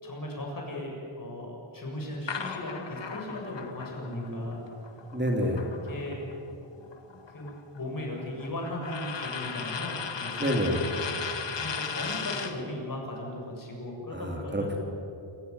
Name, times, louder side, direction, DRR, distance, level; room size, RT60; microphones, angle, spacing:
voice 1, 0.0-4.6 5.8-6.2 7.1-14.7, left 1 dB, 40° left, 0 dB, 7.3 m, -37 dB
sound 1, 2.3-6.3 6.6-12.6, left 6 dB, 60° left, 2.0 m, -37 dB
voice 2, 4.0-4.6 5.1-5.7 10.4-10.8 14.1-14.8, equal, 20° right, 2 dB, 2.9 m, -29 dB
27.5 x 15.5 x 9.6 m, 2.7 s
wide cardioid pair, 95°, 49 cm